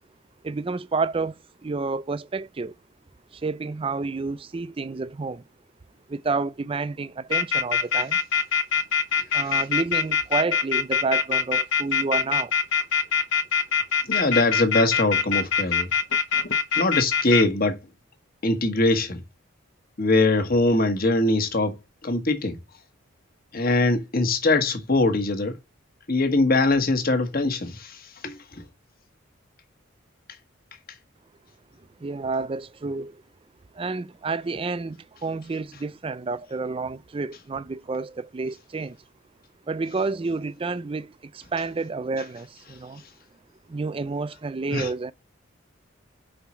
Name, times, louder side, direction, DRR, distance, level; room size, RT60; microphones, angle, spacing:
voice 1, 0.4-2.7 3.3-5.4 6.1-8.2 9.3-12.5 32.0-33.2 33.7-39.0 39.7-43.0 43.7-45.1, right 4 dB, 25° right, 0.4 m, -29 dB
sound 1, 7.3-17.4, left 7 dB, 65° left, 1.0 m, -22 dB
voice 2, 9.1-9.6 14.0-15.9 16.7-17.8 18.4-19.2 20.0-22.6 23.5-25.6 26.1-28.6 44.7-45.1, left 2 dB, 45° left, 1.3 m, -22 dB
5.6 x 4.2 x 5.9 m
head